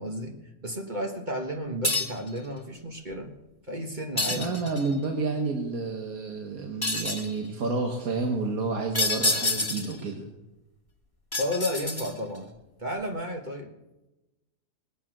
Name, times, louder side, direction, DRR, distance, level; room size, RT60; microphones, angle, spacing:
voice 1, 0.0-3.3 3.7-4.7 11.4-12.5 12.8-13.7, equal, 30° right, 2 dB, 1.4 m, -33 dB
sound 1, 1.8-2.3 4.2-4.9 6.8-7.3 8.9-10.0 11.3-12.4, left 2 dB, 15° left, 1.7 m, -28 dB
voice 2, 4.3-10.2, right 3 dB, 70° right, 2 dB, 1.8 m, -30 dB
19.5 x 9.0 x 6.2 m, 1.0 s
omnidirectional pair, 1.6 m